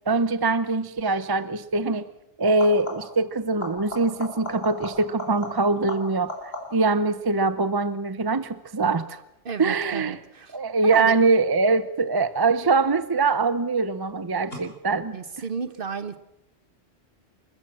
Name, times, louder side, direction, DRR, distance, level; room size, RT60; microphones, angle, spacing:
voice 1, 0.1-2.1 2.4-6.4 6.7-9.2 9.6-10.2 10.5-15.2, right 3 dB, 25° right, 14 dB, 0.6 m, -23 dB
sound 1, 1.0-1.3 2.5-3.3 3.6-7.0 12.4-13.0 14.5-14.6, left 2 dB, 60° left, 4.4 m, -37 dB
voice 2, 9.4-10.6 10.8-11.1 15.1-16.2, right 5 dB, 50° right, 12 dB, 1.3 m, -32 dB
27.5 x 14.5 x 7.5 m, 0.89 s
omnidirectional pair, 1.2 m